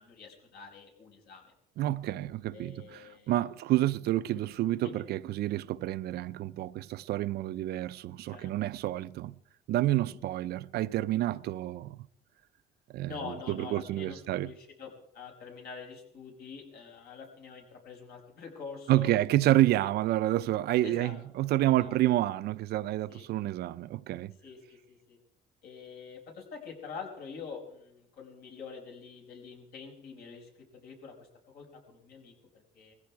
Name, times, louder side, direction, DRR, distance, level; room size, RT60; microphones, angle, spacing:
voice 1, 0.0-1.5 2.5-3.4 4.3-4.4 4.8-5.0 8.3-8.5 10.1-10.2 13.0-19.1 19.7-19.9 20.8-22.0 23.1-23.3 24.4-25.2 25.6-32.9, left 5 dB, 70° left, 5.4 m, -46 dB
voice 2, 1.8-9.4 9.7-12.0 12.9-14.5 18.9-24.3, right 15 dB, 70° right, 0.6 m, -29 dB
19.5 x 15.5 x 4.7 m
cardioid pair, 110°, 17 cm